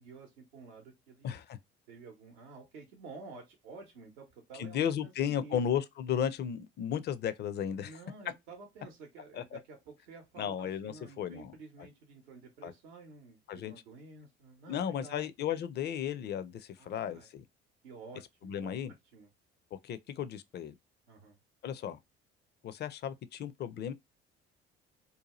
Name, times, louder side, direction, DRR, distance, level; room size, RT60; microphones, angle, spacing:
voice 1, 0.0-1.3 1.9-5.6 7.8-15.6 16.8-17.3 17.8-18.7 19.1-19.3 21.1-21.4, right 4 dB, 80° right, 0.8 m, -51 dB
voice 2, 1.2-1.6 4.6-8.0 9.3-9.6 10.4-11.9 12.6-12.7 13.5-13.7 14.7-17.4 18.4-18.9 19.8-20.7 21.6-22.0 22.6-23.9, left 9 dB, 35° left, 0.4 m, -35 dB
2.7 x 2.2 x 2.9 m
hypercardioid pair, 55°, 32 cm